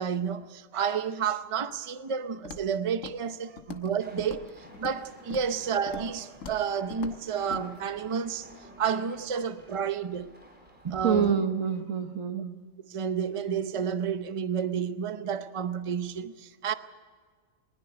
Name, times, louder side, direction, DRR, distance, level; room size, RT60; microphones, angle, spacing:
voice 1, 0.0-8.5 8.8-10.3 10.8-11.3 12.9-16.7, right 7 dB, 30° right, 0.7 m, -30 dB
Walk footsteps, 2.4-2.7 3.0-3.3 3.6-5.0 5.3-5.5 5.9-6.1 6.4-6.6 6.9-7.2 7.5-7.6, left 7 dB, 85° left, 1.6 m, -42 dB
sound 1, 4.0-11.8, equal, 5° right, 4.6 m, -53 dB
voice 2, 11.0-12.6, right 7 dB, 90° right, 1.8 m, -27 dB
21.0 x 20.5 x 6.7 m
omnidirectional pair, 1.3 m